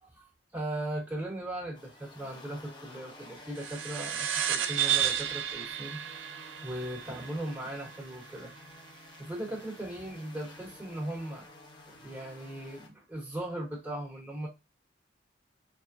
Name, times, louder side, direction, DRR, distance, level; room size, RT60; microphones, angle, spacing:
voice 1, 0.0-8.5 9.2-11.5 11.9-14.5, right 1 dB, 10° right, -3 dB, 1.0 m, -38 dB
sound 1, 1.7-12.9, left 1 dB, 25° left, 0.5 m, -52 dB
sound 2, 3.6-8.5, right 9 dB, 85° right, 0.4 m, -32 dB
3.3 x 2.1 x 2.6 m, 0.24 s
head